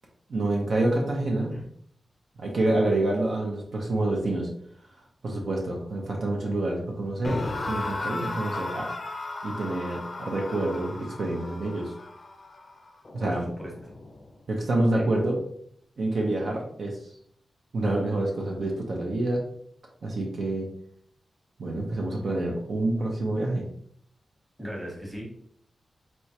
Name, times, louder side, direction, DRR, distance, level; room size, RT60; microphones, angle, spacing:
voice 1, 0.3-1.5 2.4-4.5 5.2-7.4 7.7-8.9 9.4-11.9 13.1-13.4 14.5-15.4 16.0-17.0 17.7-19.4 20.0-20.7 21.6-23.7, right 2 dB, 60° right, -1 dB, 0.8 m, -27 dB
sound 1, 7.2-14.4, left 2 dB, 35° left, 0.6 m, -36 dB
voice 2, 13.2-13.9 14.9-15.1 24.6-25.3, equal, 10° right, -3 dB, 1.2 m, -38 dB
4.3 x 3.5 x 2.9 m, 0.67 s
wide cardioid pair, 175°, 0 cm